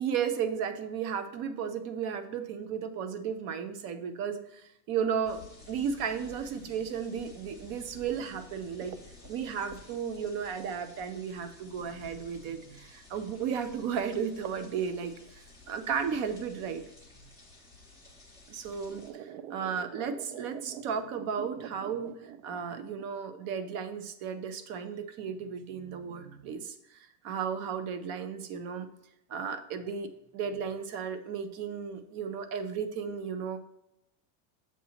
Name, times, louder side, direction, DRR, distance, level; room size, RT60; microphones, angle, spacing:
voice 1, 0.0-5.4 5.7-9.0 9.3-15.1 15.7-16.8 17.2-17.3 18.5-22.1 22.4-27.0 27.2-28.9 29.3-30.1 30.3-33.6, right 7 dB, 35° right, 9 dB, 0.4 m, -34 dB
sound 1, 5.3-19.1, left 3 dB, 10° right, 0.8 m, -53 dB
sound 2, 8.8-11.2 11.9-12.0 13.3-13.5 13.7-13.8 14.5-14.7 14.9-15.7 16.9-17.0 17.9-18.0 18.5-23.1, right 9 dB, 70° right, 0.6 m, -46 dB
7.2 x 2.9 x 5.5 m, 0.83 s
cardioid pair, 170°, 50 cm